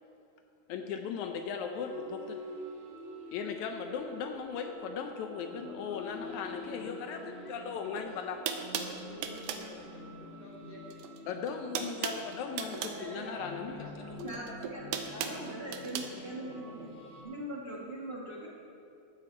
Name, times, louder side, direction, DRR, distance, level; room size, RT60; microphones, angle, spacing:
voice 1, 0.7-2.4 3.3-8.4 11.3-14.3, left 6 dB, 80° left, 5 dB, 2.0 m, -38 dB
sound 1, 1.8-17.2, left 1 dB, 25° left, 2.2 m, -47 dB
voice 2, 5.3-8.3 8.8-11.2 12.6-14.3 14.6-15.3 16.2-17.4, right 1 dB, 35° right, -5 dB, 1.1 m, -50 dB
sound 2, 7.9-8.0 8.4-9.7 10.9-11.2 11.4-13.0 14.2-16.1, right 8 dB, 75° right, 1.5 m, -37 dB
voice 3, 14.2-16.9 17.2-18.5, right 1 dB, 50° right, -5 dB, 0.7 m, -41 dB
14.0 x 9.7 x 4.5 m, 2.6 s
omnidirectional pair, 3.5 m